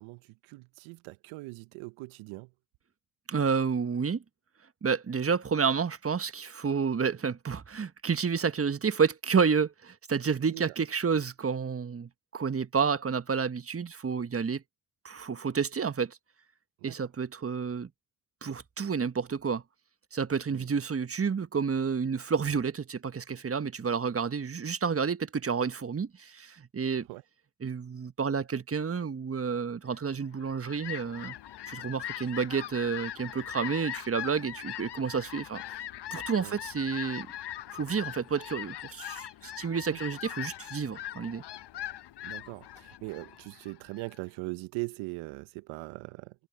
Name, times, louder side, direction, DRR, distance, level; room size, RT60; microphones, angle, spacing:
voice 1, 0.0-2.5 10.5-10.7 16.8-16.9 20.5-20.7 27.1-27.2 36.4-36.6 39.9-40.0 42.2-46.3, right 24 dB, 75° right, 1.1 m, -40 dB
voice 2, 3.3-4.2 4.8-14.6 15.0-16.2 16.8-17.9 18.4-19.6 20.1-27.1 27.6-31.3 31.7-35.6 36.1-37.3 37.7-41.4, right 6 dB, 30° right, 1.5 m, -30 dB
Fowl, 30.2-44.2, left 12 dB, 55° left, 1.3 m, -41 dB
hypercardioid pair, 50°, 49 cm